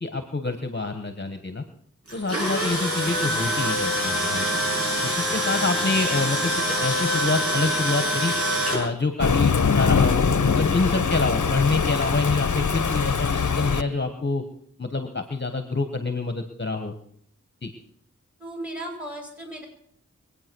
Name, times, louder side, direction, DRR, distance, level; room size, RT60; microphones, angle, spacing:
voice 1, 0.0-1.6 2.1-4.5 4.8-6.5 6.8-8.3 8.7-14.4 14.8-16.9 17.6-17.7, left 3 dB, 35° left, 7 dB, 1.3 m, -27 dB
Tools, 2.1-8.8, equal, 50° right, 6.7 m, -25 dB
Thunder, 9.2-13.8, left 5 dB, 70° left, 0.9 m, -22 dB
voice 2, 18.4-19.7, right 1 dB, 5° right, 3 dB, 5.7 m, -36 dB
23.0 x 8.8 x 6.2 m, 0.63 s
wide cardioid pair, 55°, 31 cm